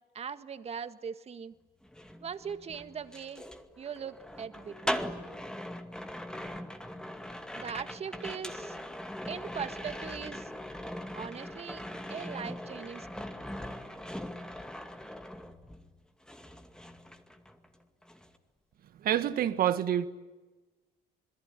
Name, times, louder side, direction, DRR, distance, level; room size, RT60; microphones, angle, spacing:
voice 1, 0.1-1.5 2.2-3.4 3.8-5.0 7.5-8.8 9.3-10.5 11.1-11.8 12.1-13.3, right 7 dB, 40° right, 1.7 m, -40 dB
sound 1, 1.8-16.0 16.3-17.7 18.0-18.4, left 1 dB, 5° left, 2.3 m, -40 dB
voice 2, 19.0-20.1, right 10 dB, 60° right, 1.9 m, -27 dB
27.0 x 22.0 x 9.8 m
cardioid pair, 110°, 17 cm